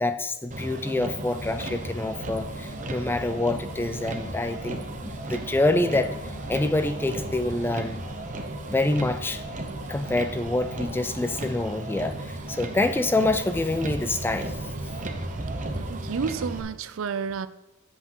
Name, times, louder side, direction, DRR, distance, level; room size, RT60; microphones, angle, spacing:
voice 1, 0.0-8.3 8.7-9.4 9.9-14.6, left 2 dB, 10° left, 10 dB, 0.3 m, -26 dB
Motor vehicle (road), 0.5-16.6, right 2 dB, 35° right, 0.7 m, -35 dB
sound 1, 1.3-11.4, left 1 dB, 45° left, 1.0 m, -43 dB
voice 2, 15.7-17.5, right 6 dB, 65° right, 14 dB, 0.4 m, -30 dB
7.9 x 7.9 x 3.0 m, 1.1 s
head